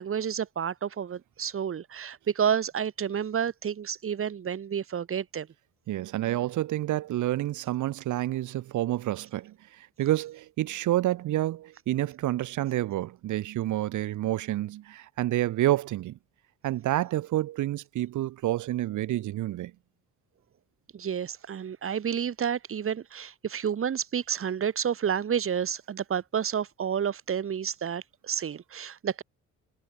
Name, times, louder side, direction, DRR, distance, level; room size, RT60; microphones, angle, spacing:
voice 1, 0.0-5.5 20.9-29.2, right 8 dB, 45° right, 1.7 m, -30 dB
voice 2, 5.9-16.2 16.6-19.7, right 14 dB, 80° right, 1.4 m, -29 dB
cardioid pair, 90°, 30 cm